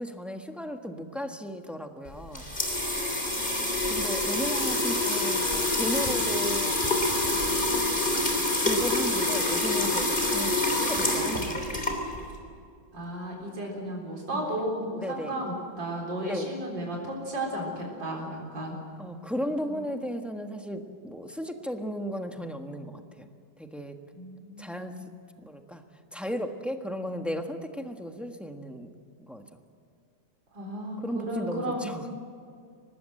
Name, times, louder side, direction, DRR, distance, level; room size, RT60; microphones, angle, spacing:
voice 1, 0.0-2.5 3.9-6.8 8.5-11.8 14.3-14.4 15.0-15.3 16.3-16.5 19.0-23.3 23.6-24.0 24.6-24.9 25.4-25.8 26.1-28.9 29.2-29.4 31.0-32.1, equal, ahead, 5 dB, 1.2 m, -35 dB
sound 1, 2.1-12.4, left 2 dB, 25° left, 3.6 m, -26 dB
voice 2, 3.3-4.0 12.9-18.8 19.7-19.8 24.1-24.7 30.5-32.1, right 1 dB, 80° right, -1 dB, 4.7 m, -34 dB
24.5 x 19.5 x 7.8 m, 2.3 s
omnidirectional pair, 2.0 m